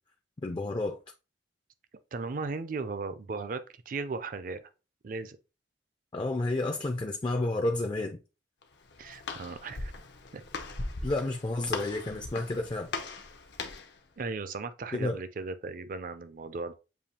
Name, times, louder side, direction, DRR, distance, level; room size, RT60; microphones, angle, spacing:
voice 1, 0.4-1.0 6.1-8.2 11.0-12.9 14.9-15.2, left 2 dB, 25° left, 0.4 m, -30 dB
voice 2, 2.1-4.7 5.0-5.4 9.0-9.9 10.3-10.4 14.2-16.7, right 4 dB, 50° right, 0.4 m, -36 dB
Walk footsteps, 8.6-14.0, left 3 dB, 75° left, 0.7 m, -39 dB
6.9 x 2.7 x 2.8 m
head